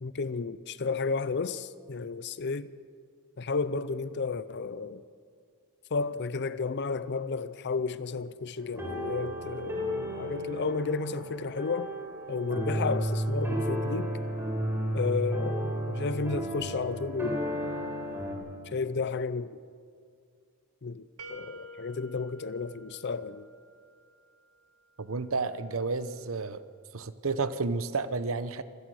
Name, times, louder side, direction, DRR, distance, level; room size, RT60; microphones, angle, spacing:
voice 1, 0.0-2.7 3.4-5.0 5.9-11.9 12.3-14.1 14.9-17.5 18.7-19.6 20.8-21.0 21.3-23.5, left 4 dB, 55° left, 0.6 m, -32 dB
sound 1, 8.6-18.3, right 1 dB, 10° right, 3.9 m, -33 dB
sound 2, 21.2-24.0, right 2 dB, 85° right, 1.5 m, -49 dB
voice 2, 25.0-26.6 26.9-28.6, right 4 dB, 65° right, 0.9 m, -31 dB
26.0 x 16.5 x 6.3 m
head